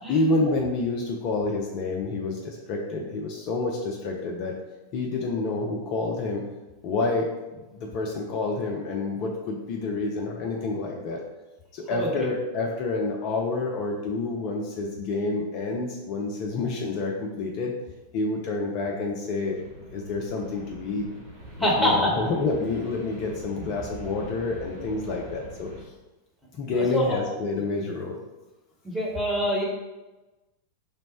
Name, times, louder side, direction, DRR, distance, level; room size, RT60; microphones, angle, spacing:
voice 1, 0.1-4.5 4.9-6.5 6.8-7.3 7.6-11.2 11.7-17.7 18.1-19.6 19.9-21.1 21.6-25.9 26.5-28.2, left 3 dB, 40° left, -1 dB, 0.4 m, -28 dB
sound 1, 19.5-25.8, right 1 dB, 50° right, 1.1 m, -43 dB
voice 2, 21.6-22.1 23.6-23.7 26.7-27.2 28.8-29.6, equal, ahead, -5 dB, 1.0 m, -25 dB
3.2 x 2.1 x 4.2 m, 1.1 s
figure-of-eight pair, 90°, 0 cm